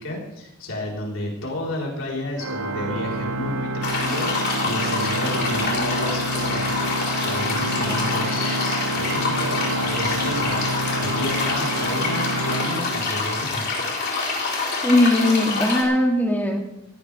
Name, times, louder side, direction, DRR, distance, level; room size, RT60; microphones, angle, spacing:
voice 1, 0.0-13.9, left 1 dB, 75° left, -3 dB, 4.6 m, -32 dB
Organ, 2.4-13.5, right 1 dB, 90° right, 1.1 m, -28 dB
sound 1, 3.8-15.8, left 3 dB, 50° left, 4.4 m, -26 dB
voice 2, 14.8-16.6, left 1 dB, 10° left, 1 dB, 2.3 m, -19 dB
18.0 x 17.0 x 3.6 m, 0.92 s
head